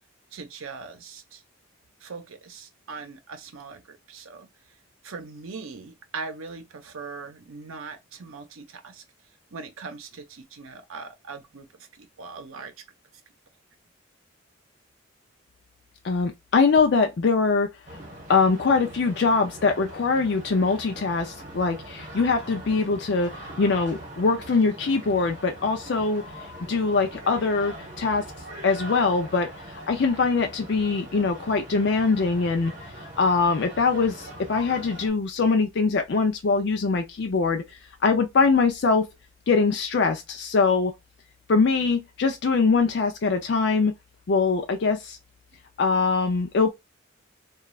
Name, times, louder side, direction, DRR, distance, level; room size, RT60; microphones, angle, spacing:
voice 1, 0.3-1.4 2.0-4.5 5.0-9.0 9.5-12.7 41.8-41.9 45.5-45.6, right 4 dB, 80° right, 0.7 m, -40 dB
voice 2, 16.0-17.7 18.3-23.3 23.6-26.2 26.7-28.2 28.6-29.5 29.9-32.7 33.2-37.6 38.0-39.1 39.5-40.9 41.5-43.9 44.3-45.2 45.8-46.7, left 4 dB, 55° left, 0.4 m, -22 dB
sound 1, 17.9-35.1, right 1 dB, 35° right, 1.1 m, -42 dB
3.0 x 2.3 x 2.3 m
head